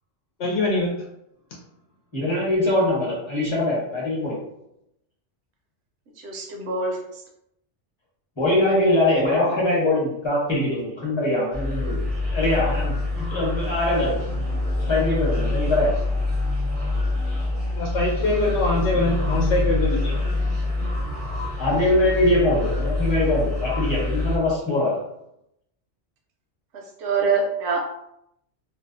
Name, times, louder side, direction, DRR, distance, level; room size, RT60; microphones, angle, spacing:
voice 1, 0.4-1.0 17.8-20.1, left 2 dB, 75° left, -2 dB, 0.8 m, -23 dB
voice 2, 2.1-4.4 8.4-14.2 14.9-16.0 21.6-25.1, left 1 dB, 25° left, -5 dB, 0.8 m, -22 dB
voice 3, 6.2-7.0 27.0-27.8, right 4 dB, 70° right, 1 dB, 0.8 m, -24 dB
sound 1, 11.5-24.4, left 2 dB, 40° right, 0.5 m, -25 dB
2.6 x 2.1 x 2.5 m, 0.78 s
omnidirectional pair, 1.2 m